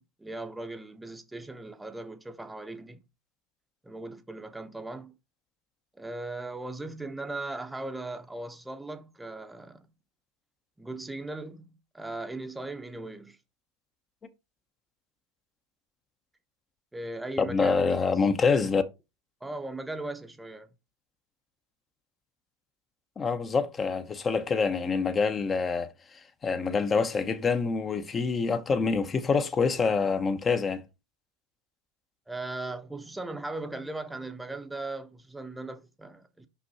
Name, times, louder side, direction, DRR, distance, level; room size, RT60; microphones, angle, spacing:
voice 1, 0.0-3.0 3.8-5.1 6.0-9.9 10.8-13.4 16.9-18.1 18.5-18.6 19.4-20.7 32.3-36.5, right 2 dB, 5° right, 0.8 m, -38 dB
voice 2, 17.4-18.8 23.2-30.8, left 5 dB, 25° left, 0.7 m, -26 dB
5.7 x 5.3 x 4.0 m
hypercardioid pair, 100°, 0 cm